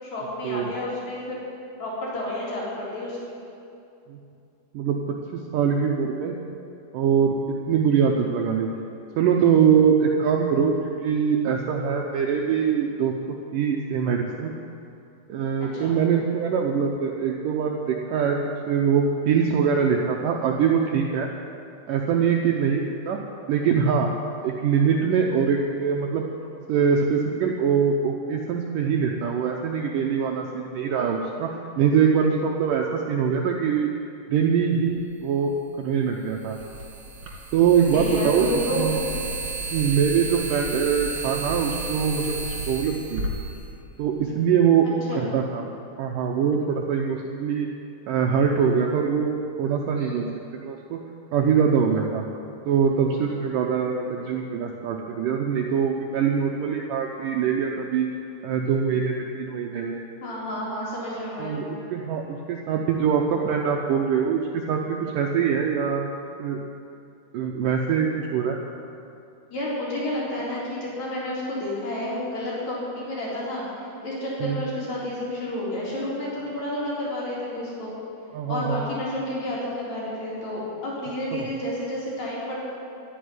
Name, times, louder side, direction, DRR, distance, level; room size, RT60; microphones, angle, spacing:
voice 1, 0.0-1.4 1.8-3.4 15.7-16.0 37.9-39.0 45.1-45.3 49.9-50.2 60.2-61.6 69.5-77.9 78.5-82.6, left 1 dB, 45° left, -7 dB, 5.0 m, -30 dB
voice 2, 4.7-6.4 6.9-8.7 9.2-10.7 11.0-13.1 13.5-14.5 15.3-18.4 18.7-21.3 21.9-23.2 23.5-24.1 24.4-26.3 26.7-31.5 31.8-33.9 34.3-35.5 35.8-36.6 37.5-39.0 39.7-42.4 42.7-43.2 44.0-45.6 46.0-47.7 48.1-49.3 49.6-50.3 50.6-51.0 51.3-52.2 52.7-58.1 58.4-60.0 61.4-66.1 66.4-66.6 67.3-68.6 74.4-74.6 78.3-78.8 81.3-81.5, right 7 dB, 75° right, 1 dB, 2.0 m, -23 dB
sound 1, 34.9-35.0 36.4-44.3, right 3 dB, 40° right, 2.6 m, -32 dB
12.0 x 9.9 x 9.6 m, 2.6 s
omnidirectional pair, 4.7 m